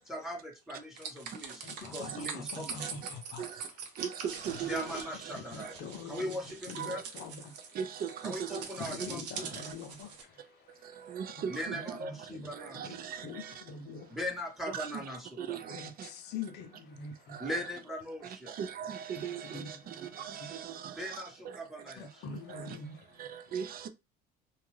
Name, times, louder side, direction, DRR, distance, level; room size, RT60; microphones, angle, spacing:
voice 1, 0.1-2.8 4.7-5.8 6.1-7.0 8.2-9.5 11.5-12.8 14.1-15.3 17.4-18.5 21.0-22.2, equal, ahead, 1.0 m, -39 dB
sound 1, 1.0-10.2, right 6 dB, 85° right, 0.7 m, -44 dB
voice 2, 1.5-3.5 4.5-4.6 4.9-5.0 5.3-7.8 8.8-14.2 15.7-17.5 19.2-19.9 20.2-20.5 22.0-23.5, left 4 dB, 55° left, 0.6 m, -45 dB
voice 3, 4.5-5.0 6.8-7.0 7.8-8.6 11.1-11.8 12.7-13.2 14.7-14.9 15.4-15.8 18.6-19.6 20.2-20.7 23.2-23.9, right 8 dB, 45° right, 0.6 m, -37 dB
2.5 x 2.2 x 3.2 m
hypercardioid pair, 70°, 21 cm